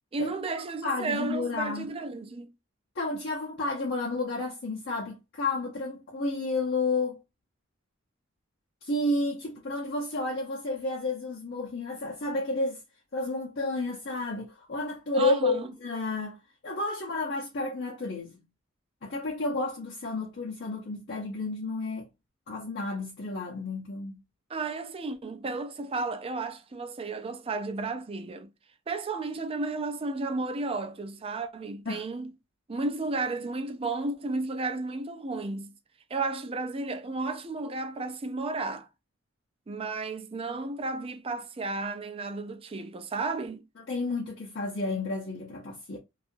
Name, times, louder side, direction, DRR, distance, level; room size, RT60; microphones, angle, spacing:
voice 1, 0.1-2.5 15.1-15.7 24.5-28.5 28.9-32.3 32.7-35.8 36.1-38.9 39.7-43.6, right 3 dB, 30° right, 0.4 m, -33 dB
voice 2, 0.8-1.9 2.9-7.2 8.8-12.8 13.1-16.4 16.6-18.3 19.0-22.1 22.5-24.2 31.9-32.1 43.8-46.0, left 2 dB, 60° left, 0.7 m, -31 dB
2.7 x 2.4 x 2.5 m
head